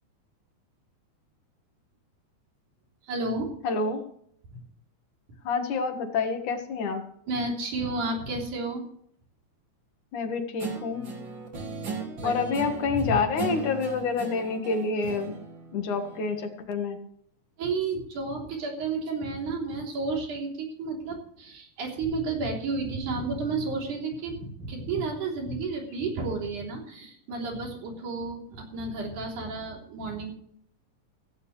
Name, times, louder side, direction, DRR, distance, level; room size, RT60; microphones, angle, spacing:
voice 1, 3.0-3.5 4.5-4.6 7.3-8.8 11.6-11.7 12.2-13.1 17.6-30.3, right 3 dB, 85° right, 0 dB, 4.9 m, -32 dB
voice 2, 3.6-4.0 5.4-7.0 10.1-11.1 12.2-15.4 15.7-17.0, left 4 dB, 80° left, 6 dB, 3.3 m, -28 dB
Guitar, 10.6-16.4, right 4 dB, 40° right, 2.9 m, -37 dB
16.5 x 15.5 x 3.3 m, 0.66 s
omnidirectional pair, 3.5 m